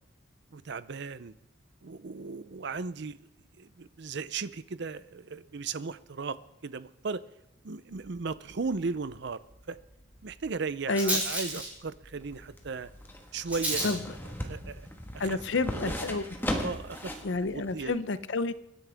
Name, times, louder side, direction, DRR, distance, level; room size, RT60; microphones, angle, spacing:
voice 1, 0.5-1.3 1.8-3.2 3.6-7.2 7.6-9.8 10.2-12.9 13.3-13.9 14.4-14.9 15.1-15.4 15.7-15.9 16.6-17.1 17.5-17.9, right 4 dB, 60° right, 15 dB, 0.6 m, -36 dB
Rattle, 7.9-17.9, right 1 dB, 10° right, 5.5 m, -39 dB
voice 2, 10.9-11.2 13.8-14.0 15.2-16.2 17.2-18.5, left 3 dB, 65° left, 14 dB, 0.7 m, -29 dB
sound 1, 12.2-17.3 17.7-17.8, equal, 10° left, 1.5 m, -37 dB
25.5 x 10.5 x 3.5 m, 0.82 s
head